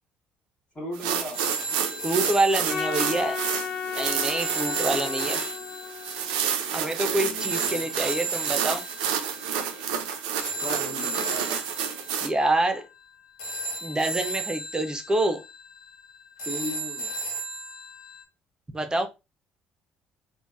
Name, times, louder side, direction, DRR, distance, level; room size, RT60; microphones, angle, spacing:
voice 1, 0.7-1.4 2.6-3.3 7.1-7.9 10.6-11.6 16.5-17.2, left 1 dB, 25° left, 0.8 m, -37 dB
sound 1, 0.9-12.3, right 8 dB, 70° right, 0.4 m, -30 dB
sound 2, 1.3-18.2, right 3 dB, 65° left, 0.7 m, -36 dB
voice 2, 2.0-3.4 4.0-5.4 6.7-8.8 12.2-12.9 13.8-15.4 18.7-19.1, right 2 dB, 15° right, 0.5 m, -26 dB
Trumpet, 2.7-7.1, left 6 dB, 40° left, 1.3 m, -35 dB
3.1 x 2.0 x 2.4 m
figure-of-eight pair, 50°, 5 cm